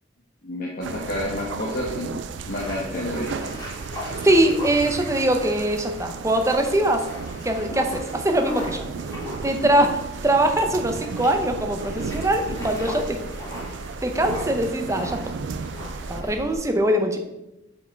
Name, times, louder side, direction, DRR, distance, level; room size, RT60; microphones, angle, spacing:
voice 1, 0.4-2.1 2.5-3.4 16.2-16.3, left 1 dB, 50° left, -3 dB, 1.1 m, -29 dB
sound 1, 0.8-16.2, right 5 dB, 80° right, 0.4 m, -35 dB
sound 2, 2.3-16.6, left 1 dB, 20° left, 2.3 m, -38 dB
voice 2, 4.2-7.1 7.4-8.9 9.4-13.2 14.0-15.2 16.1-17.2, right 1 dB, 15° right, 5 dB, 0.7 m, -22 dB
5.7 x 5.2 x 4.5 m, 0.94 s
head